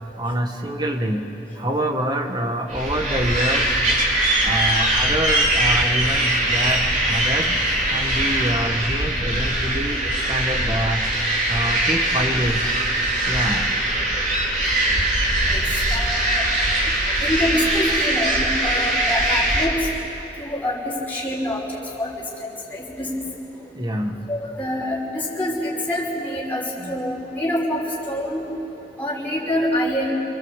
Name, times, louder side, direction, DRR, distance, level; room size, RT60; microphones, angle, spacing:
voice 1, 0.2-1.2 1.6-3.8 4.4-7.6 7.9-11.1 11.5-12.7 13.3-13.6 23.7-24.2 26.8-27.0, right 1 dB, 25° right, 4 dB, 1.8 m, -26 dB
sound 1, 2.7-19.7, right 1 dB, 45° right, 3.8 m, -21 dB
voice 2, 15.4-16.4 17.2-19.9 20.4-23.3 23.6-23.7 24.3-28.4 29.0-30.1, left 1 dB, 10° left, -5 dB, 5.7 m, -26 dB
27.0 x 23.5 x 8.4 m, 2.7 s
head